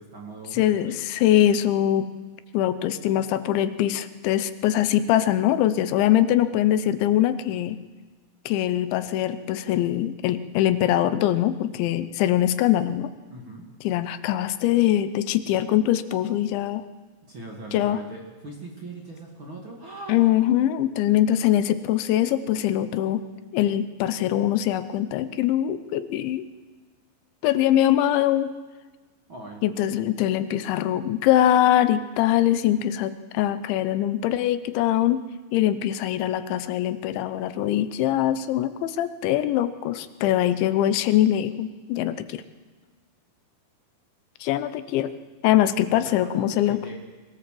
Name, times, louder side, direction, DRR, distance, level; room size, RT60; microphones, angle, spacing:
voice 1, 0.0-0.9 13.3-13.6 17.3-20.3 29.3-29.6 45.5-45.6 46.2-47.0, right 2 dB, 35° right, -1 dB, 2.2 m, -40 dB
voice 2, 0.5-2.1 2.5-7.9 8.5-13.1 13.8-16.8 17.7-18.0 20.1-23.3 23.5-26.5 27.4-28.5 29.6-35.2 35.5-42.4 44.4-45.1 45.4-46.8, left 12 dB, 85° left, 12 dB, 3.2 m, -22 dB
23.5 x 18.0 x 7.7 m, 1.3 s
omnidirectional pair, 5.2 m